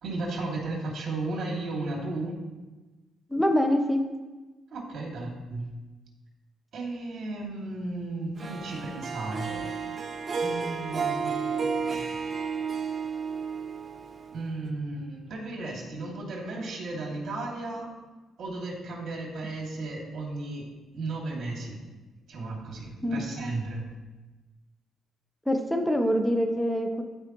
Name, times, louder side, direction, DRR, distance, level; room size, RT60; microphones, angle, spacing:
voice 1, 0.0-2.4 4.7-5.7 6.7-9.7 10.4-12.2 14.3-17.9 18.4-20.7 20.9-21.8 22.3-23.8, right 2 dB, 60° right, -1 dB, 2.8 m, -34 dB
voice 2, 3.3-4.0 23.0-23.2 25.5-27.0, equal, 5° left, 4 dB, 1.1 m, -24 dB
Harp, 8.4-14.7, right 5 dB, 40° right, 0.7 m, -32 dB
14.5 x 5.0 x 3.2 m, 1.2 s
cardioid pair, 90°, 0 cm